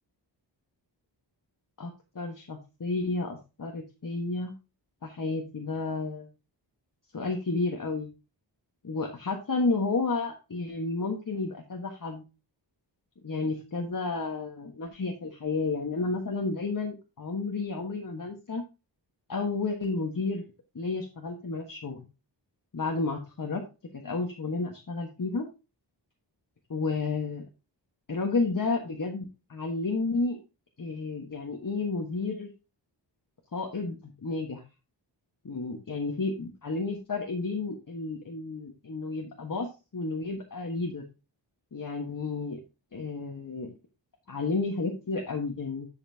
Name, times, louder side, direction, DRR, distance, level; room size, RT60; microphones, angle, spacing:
voice 1, 1.8-4.5 5.0-6.3 7.1-8.1 8.8-12.2 13.2-18.6 19.3-20.4 20.7-22.0 22.7-23.6 23.9-25.5 26.7-27.4 28.1-30.4 30.8-32.5 33.5-34.6 35.4-41.0 41.7-42.6 42.9-43.7 44.3-45.9, left 3 dB, 45° left, 1 dB, 1.4 m, -31 dB
10.5 x 5.7 x 2.8 m, 0.29 s
wide cardioid pair, 95°, 45 cm